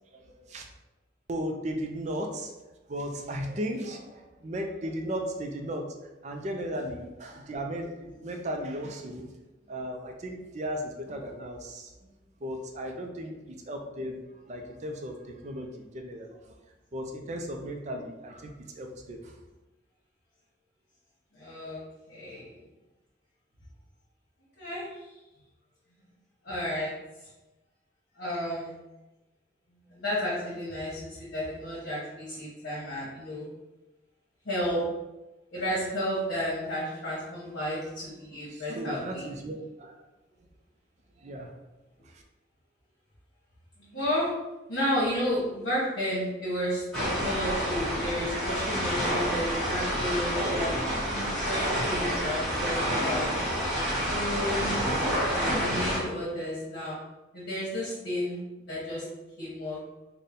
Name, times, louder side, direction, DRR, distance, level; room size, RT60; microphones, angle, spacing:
voice 1, 0.1-0.7 1.3-2.5 2.9-5.9 6.2-9.3 9.7-11.9 12.4-16.6 16.9-19.4 38.5-40.0 41.2-41.6 42.1-42.2, equal, 40° right, 3 dB, 0.4 m, -36 dB
voice 2, 21.3-21.8 22.1-22.6 24.6-24.9 26.4-26.9 28.2-28.8 29.9-33.5 34.4-34.8 35.5-39.3 43.8-44.3 44.7-50.7 51.1-53.3 53.7-54.9 55.3-57.0 57.3-58.4 58.7-59.0 59.4-59.8, equal, 65° left, -9 dB, 1.1 m, -32 dB
sound 1, 46.9-56.0, equal, 5° left, 1.3 m, -28 dB
4.0 x 2.1 x 3.6 m, 1.0 s
head